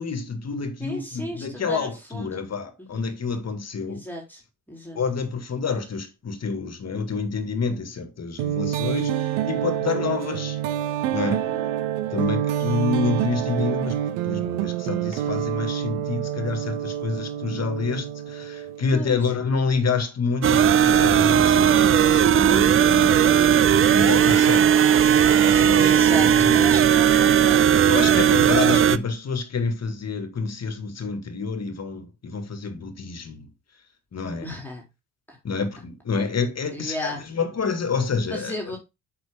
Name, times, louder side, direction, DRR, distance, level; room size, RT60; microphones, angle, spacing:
voice 1, 0.0-4.0 5.0-10.6 11.1-11.5 12.1-14.0 14.2-23.3 23.5-24.7 25.4-25.9 26.2-26.6 27.9-33.5 34.1-34.5 35.4-38.5, left 4 dB, 35° left, 2.0 m, -28 dB
voice 2, 0.8-2.4 2.8-3.0 3.8-4.4 4.7-5.0 11.3-11.7 18.9-19.2 21.5-22.0 25.8-27.8 34.4-34.8 35.3-35.4 36.7-37.2 38.3-38.8, equal, 5° left, 3.3 m, -34 dB
sound 1, 8.4-19.0, right 11 dB, 70° right, 1.0 m, -27 dB
sound 2, 20.4-29.0, right 8 dB, 30° right, 0.6 m, -17 dB
8.1 x 6.1 x 3.6 m
hypercardioid pair, 60°, 43 cm